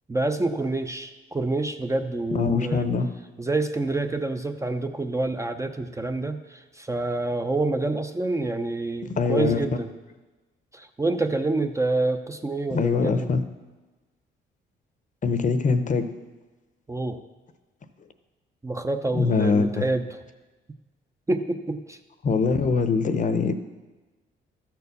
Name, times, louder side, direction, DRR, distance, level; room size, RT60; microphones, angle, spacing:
voice 1, 0.1-2.9 3.4-9.9 10.7-13.3 16.9-17.2 18.6-20.0 21.3-22.0, right 2 dB, 15° right, 7 dB, 0.6 m, -27 dB
voice 2, 2.3-3.1 9.2-9.6 12.7-13.4 15.2-16.0 19.1-19.9 22.2-23.5, left 4 dB, 40° left, 10 dB, 0.8 m, -23 dB
13.5 x 4.6 x 6.7 m, 1.2 s
cardioid pair, 90°, 20 cm